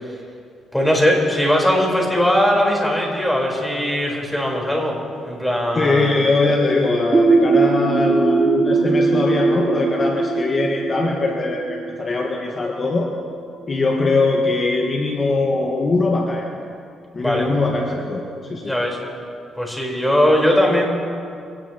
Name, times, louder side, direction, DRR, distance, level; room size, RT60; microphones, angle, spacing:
voice 1, 0.7-5.0 5.2-6.3 17.2-17.5 18.6-19.0 19.6-20.8, equal, 5° left, -2 dB, 4.3 m, -19 dB
voice 2, 5.7-13.1 13.7-16.5 17.1-18.7, left 3 dB, 35° left, 0 dB, 1.6 m, -21 dB
sound 1, 7.1-12.7, right 4 dB, 25° right, 2.4 m, -20 dB
24.0 x 18.0 x 3.0 m, 2.4 s
cardioid pair, 90°, 0 cm